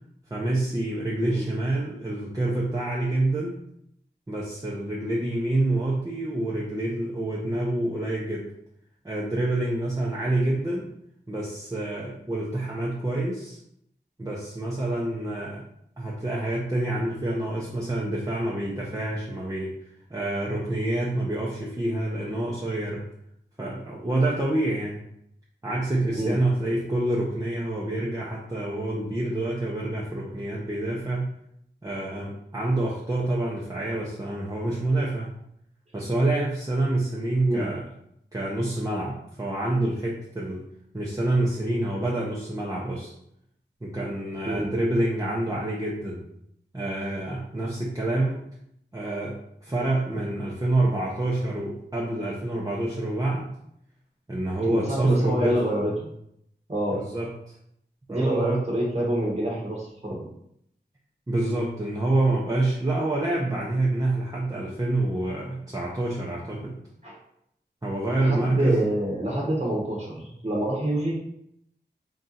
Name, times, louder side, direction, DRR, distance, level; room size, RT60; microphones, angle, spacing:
voice 1, 0.3-3.6 4.3-8.5 9.0-10.9 11.3-13.6 14.2-15.6 16.0-19.8 20.1-23.0 23.6-25.0 25.6-31.3 31.8-35.3 35.9-37.8 38.3-40.6 40.9-43.1 43.8-46.2 46.7-48.4 48.9-53.5 54.3-55.6 56.9-57.5 58.1-58.6 61.3-66.8 67.8-68.8, right 2 dB, 20° right, -5 dB, 0.7 m, -27 dB
voice 2, 54.6-56.1 56.7-57.0 58.1-60.3 67.0-67.2 68.2-71.1, right 1 dB, 35° right, -5 dB, 1.1 m, -27 dB
3.7 x 2.8 x 3.8 m, 0.74 s
wide cardioid pair, 80°, 18 cm